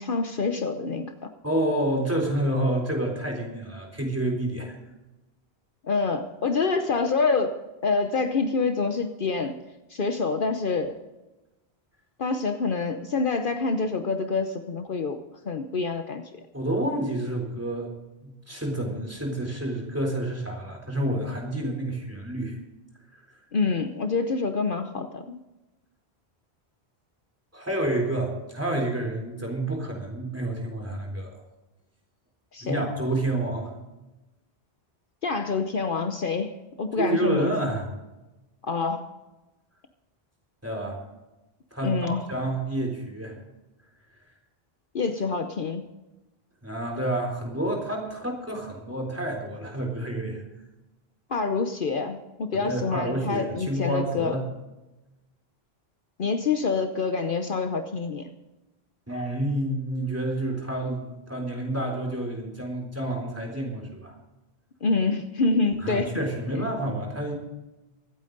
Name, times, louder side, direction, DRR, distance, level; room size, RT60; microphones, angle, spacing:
voice 1, 0.0-1.3 5.8-7.6 7.8-9.6 9.9-11.0 12.2-15.2 15.4-16.2 23.5-25.4 32.5-32.9 35.2-37.7 38.6-39.1 41.8-42.2 44.9-45.8 51.3-54.4 56.2-58.3 64.8-66.1, left 4 dB, 60° left, 7 dB, 1.0 m, -26 dB
voice 2, 1.4-4.8 16.5-17.9 18.2-22.6 27.5-31.4 32.6-33.7 37.0-37.9 40.6-41.0 41.7-43.4 46.6-50.4 52.6-54.4 59.1-64.1 65.8-67.4, right 1 dB, 15° right, 1 dB, 3.8 m, -29 dB
24.0 x 8.9 x 4.0 m, 1.0 s
omnidirectional pair, 1.0 m